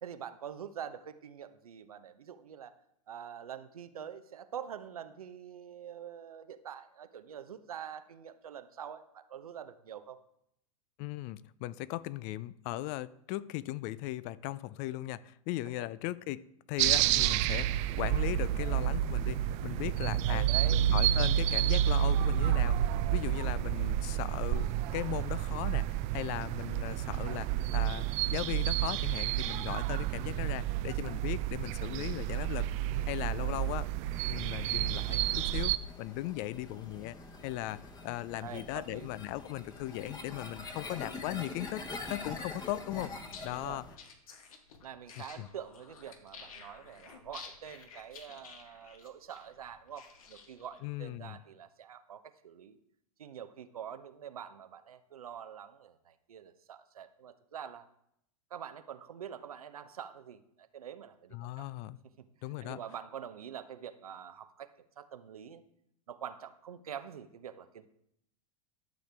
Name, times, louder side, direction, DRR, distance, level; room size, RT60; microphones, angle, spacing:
voice 1, 0.0-2.7 3.1-10.2 15.8-15.9 20.3-20.8 38.4-39.1 43.5-43.8 44.8-52.8 53.2-57.9 58.5-61.7 62.2-62.3 62.6-64.7 65.0-65.6 66.1-67.9, right 9 dB, 80° right, 11 dB, 0.8 m, -45 dB
voice 2, 11.0-20.5 20.7-22.8 23.1-24.7 24.9-33.9 34.3-37.2 37.4-43.1 43.4-43.8 45.2-45.5 50.8-51.4 61.3-62.0 62.4-62.8, left 16 dB, 40° left, 19 dB, 0.4 m, -38 dB
sound 1, 16.8-35.8, right 12 dB, 40° right, 0.4 m, -30 dB
sound 2, 34.1-43.9, left 3 dB, 20° left, 1.2 m, -45 dB
sound 3, 43.2-50.8, left 5 dB, 70° left, 1.5 m, -52 dB
12.0 x 6.5 x 3.4 m, 0.75 s
hypercardioid pair, 100°, 18 cm